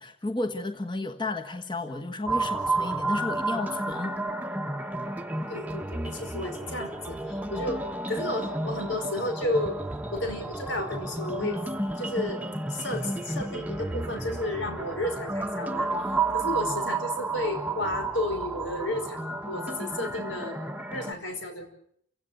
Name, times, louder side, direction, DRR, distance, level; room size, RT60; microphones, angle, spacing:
voice 1, 0.0-4.2, left 2 dB, 25° left, 5 dB, 1.4 m, -32 dB
sound 1, 2.3-21.1, right 2 dB, 10° right, 1.0 m, -32 dB
voice 2, 5.5-9.8 10.1-11.6 12.0-12.4 12.7-20.6 20.9-21.7, left 1 dB, 85° left, 6 dB, 5.2 m, -32 dB
29.0 x 17.0 x 8.2 m, 0.67 s
head